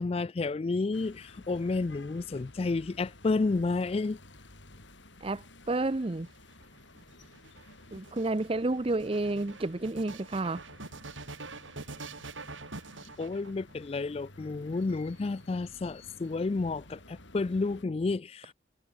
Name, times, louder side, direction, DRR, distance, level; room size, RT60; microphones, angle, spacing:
voice 1, 0.0-4.2 13.2-18.5, left 3 dB, 30° left, 0.3 m, -31 dB
sound 1, 0.9-17.8, left 2 dB, 65° left, 6.9 m, -54 dB
voice 2, 5.2-6.3 7.9-10.6, right 2 dB, 30° right, 0.6 m, -30 dB
sound 2, 6.0-14.0 14.8-15.6, right 3 dB, 75° right, 3.6 m, -46 dB
head